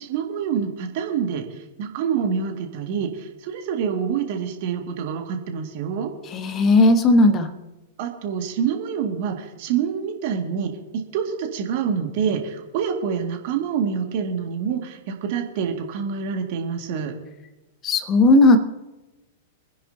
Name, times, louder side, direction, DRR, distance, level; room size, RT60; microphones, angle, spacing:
voice 1, 0.1-6.1 8.0-17.1, right 7 dB, 45° right, 3 dB, 2.1 m, -26 dB
voice 2, 6.3-7.5 17.8-18.6, left 2 dB, 25° left, 10 dB, 1.2 m, -15 dB
25.0 x 10.0 x 2.8 m, 1.1 s
figure-of-eight pair, 100°, 0 cm